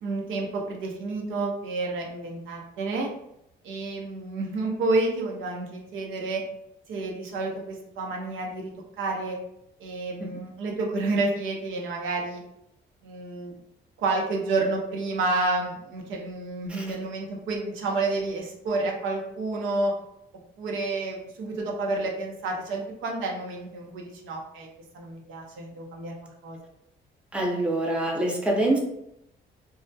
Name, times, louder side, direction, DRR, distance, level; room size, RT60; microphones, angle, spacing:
voice 1, 0.0-3.1 3.6-6.4 6.9-9.4 9.8-12.4 13.0-13.5 14.0-20.0 20.6-24.7 24.9-26.6, right 2 dB, 85° right, 0 dB, 0.6 m, -30 dB
voice 2, 27.3-28.8, right 1 dB, 5° right, -1 dB, 0.5 m, -25 dB
2.3 x 2.0 x 2.6 m, 0.79 s
cardioid pair, 90°, 20 cm